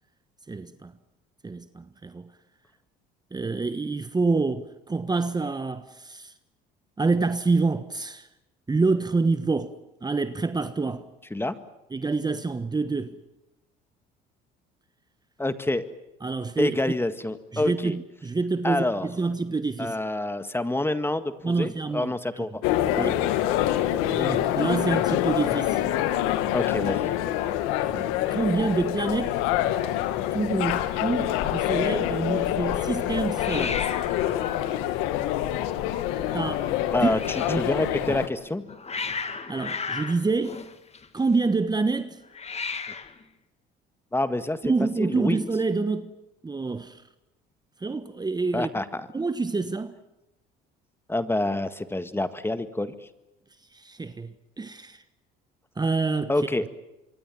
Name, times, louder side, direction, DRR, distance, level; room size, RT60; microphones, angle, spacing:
voice 1, 0.5-0.9 1.4-2.3 3.3-6.3 7.0-8.3 8.7-9.8 10.0-11.1 11.9-13.2 16.2-17.0 17.5-20.0 21.4-22.5 23.0-23.2 24.0-25.9 27.8-29.4 30.3-33.9 36.3-36.7 37.0-37.1 37.5-37.6 38.1-38.2 39.5-40.6 41.1-42.2 44.6-46.1 46.4-47.0 47.8-48.7 49.1-49.9 53.7-55.0 55.8-56.3, right 3 dB, 20° right, 1.3 m, -27 dB
voice 2, 15.4-15.9 16.6-18.0 18.6-19.1 19.8-22.6 22.9-23.1 26.5-27.1 36.9-37.2 37.6-38.6 44.1-44.7 45.0-45.4 48.5-49.1 51.1-52.9 56.3-56.7, left 2 dB, 10° left, 1.7 m, -27 dB
sound 1, 22.6-38.3, left 12 dB, 80° left, 1.7 m, -26 dB
Hiss, 27.0-28.4 28.7-29.1 29.4-29.5 29.7-30.3 33.3-37.6 38.4-41.3 42.3-43.2, left 5 dB, 30° left, 2.0 m, -37 dB
26.5 x 23.0 x 7.4 m
supercardioid pair, 80°, 21 cm